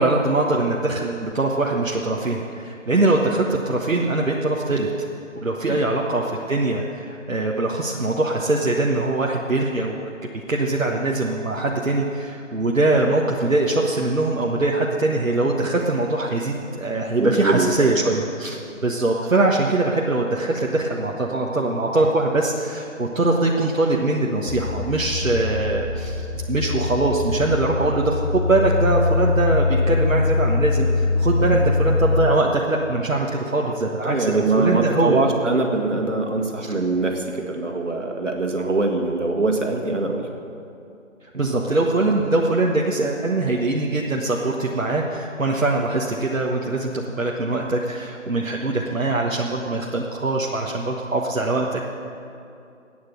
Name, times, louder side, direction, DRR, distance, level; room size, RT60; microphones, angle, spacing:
voice 1, 0.0-4.9 5.4-10.0 10.3-35.2 36.6-36.7 41.3-46.9 47.2-51.8, right 2 dB, 80° right, -1 dB, 1.4 m, -22 dB
voice 2, 17.2-17.9 31.4-31.5 34.0-40.3 41.3-41.5, right 3 dB, 65° right, 2 dB, 2.1 m, -23 dB
sound 1, 24.5-32.2, left 3 dB, 60° left, 2.4 m, -23 dB
14.0 x 9.4 x 8.0 m, 2.6 s
figure-of-eight pair, 175°, 39 cm